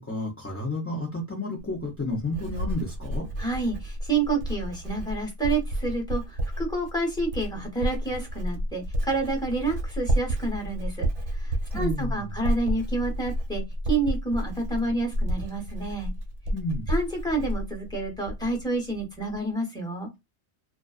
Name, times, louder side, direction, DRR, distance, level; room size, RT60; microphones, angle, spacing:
voice 1, 0.0-3.3 11.7-12.4 16.5-16.9, left 1 dB, 20° left, 0.4 m, -31 dB
Writing, 1.6-18.6 18.9-19.4, equal, 80° right, 1.1 m, -31 dB
voice 2, 3.4-11.1 11.3-13.6 13.9-16.1 16.9-20.1, right 3 dB, 5° left, 0.9 m, -29 dB
2.4 x 2.3 x 2.3 m
omnidirectional pair, 1.2 m